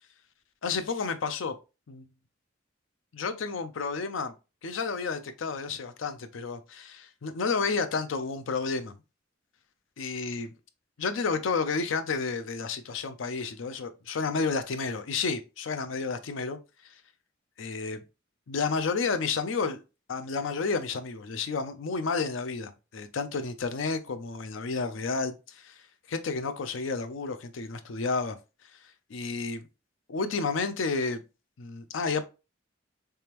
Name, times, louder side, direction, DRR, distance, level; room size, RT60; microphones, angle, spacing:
voice 1, 0.6-1.5 1.9-2.1 3.1-4.3 4.6-8.9 10.0-10.5 11.0-16.6 17.6-18.0 18.5-19.8 20.1-25.8 26.1-28.4 29.1-29.6 30.1-31.2 31.6-32.2, left 4 dB, 80° left, 0.5 m, -31 dB
3.4 x 3.3 x 2.9 m
head